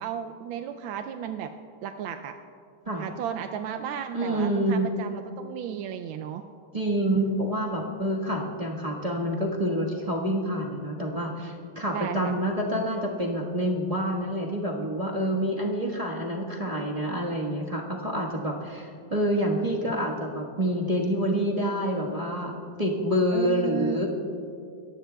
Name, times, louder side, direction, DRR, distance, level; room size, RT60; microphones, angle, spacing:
voice 1, 0.0-1.5 1.8-2.4 3.0-6.4 11.9-12.4 23.3-24.0, right 9 dB, 85° right, 6 dB, 1.4 m, -34 dB
voice 2, 4.1-4.9 6.7-24.1, equal, 20° right, -3 dB, 1.3 m, -27 dB
29.0 x 14.5 x 2.3 m, 2.6 s
omnidirectional pair, 2.1 m